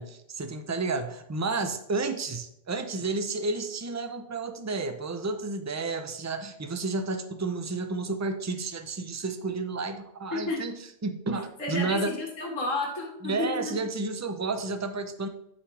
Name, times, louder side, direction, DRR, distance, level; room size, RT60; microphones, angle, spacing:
voice 1, 0.0-10.7 11.0-12.1 13.2-15.3, right 3 dB, 20° right, 8 dB, 0.4 m, -31 dB
voice 2, 11.6-13.5, left 2 dB, 80° left, 0 dB, 2.0 m, -31 dB
11.5 x 5.6 x 3.3 m, 0.77 s
omnidirectional pair, 1.3 m